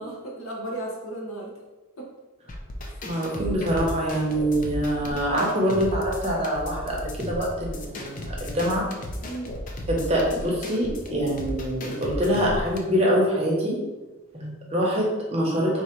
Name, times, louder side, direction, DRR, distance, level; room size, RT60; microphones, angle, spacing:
voice 1, 0.0-1.6 2.0-2.1 2.9-3.0 5.0-5.5 9.2-9.5, right 1 dB, 65° left, -1 dB, 0.9 m, -36 dB
sound 1, 2.5-12.8, left 1 dB, 40° left, 0.4 m, -35 dB
voice 2, 3.0-8.9 9.9-13.8 14.3-15.8, equal, 30° right, -3 dB, 0.9 m, -25 dB
3.8 x 2.7 x 4.4 m, 1.2 s
head